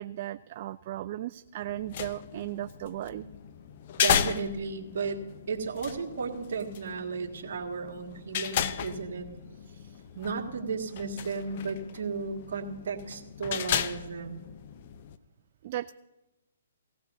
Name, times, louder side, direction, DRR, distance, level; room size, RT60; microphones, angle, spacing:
voice 1, 0.0-3.3 15.6-15.9, right 13 dB, 45° right, 13 dB, 0.3 m, -36 dB
sound 1, 1.7-15.2, left 9 dB, 45° left, 0.7 m, -35 dB
voice 2, 4.0-9.3 10.2-14.4, right 4 dB, 60° right, 1 dB, 2.0 m, -34 dB
18.0 x 15.5 x 2.7 m, 1.0 s
hypercardioid pair, 140°, 0 cm